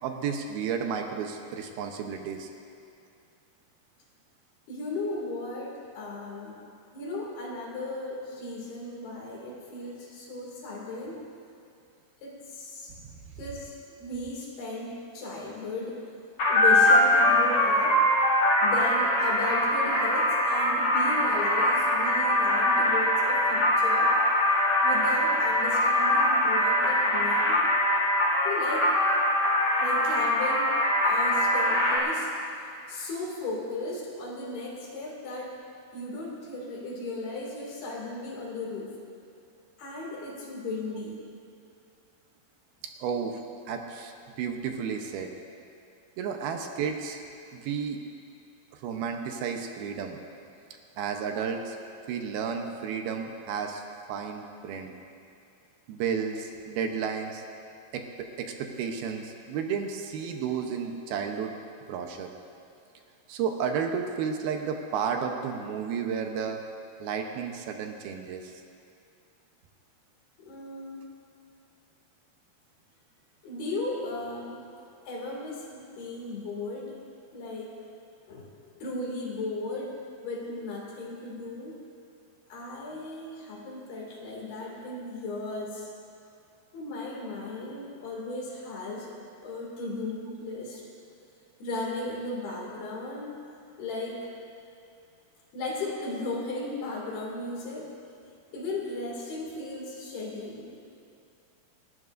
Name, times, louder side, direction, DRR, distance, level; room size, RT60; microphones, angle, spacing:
voice 1, 0.0-2.5 13.0-13.1 43.0-43.4 43.7-45.3 46.2-47.2 47.5-48.0 48.7-50.2 51.0-51.8 52.1-53.8 54.1-54.9 55.9-57.4 57.9-58.1 58.4-61.5 61.9-62.3 63.3-66.6 67.0-68.6, right 6 dB, 75° right, 4 dB, 2.7 m, -32 dB
voice 2, 4.7-6.6 6.9-11.2 12.2-12.9 13.4-16.0 16.5-18.0 18.6-24.1 24.8-27.6 28.4-28.9 29.8-32.3 32.9-35.6 35.9-39.0 39.8-41.2 70.4-71.0 73.4-74.7 75.1-77.0 77.3-77.7 78.3-81.8 82.5-85.9 86.7-89.1 89.4-90.8 91.6-93.4 93.8-94.3 95.5-97.9 98.5-100.8, left 2 dB, 75° left, -3 dB, 4.3 m, -36 dB
sound 1, 16.4-32.0, left 1 dB, 50° left, 3.2 m, -23 dB
28.0 x 12.5 x 2.6 m, 2.5 s
omnidirectional pair, 4.5 m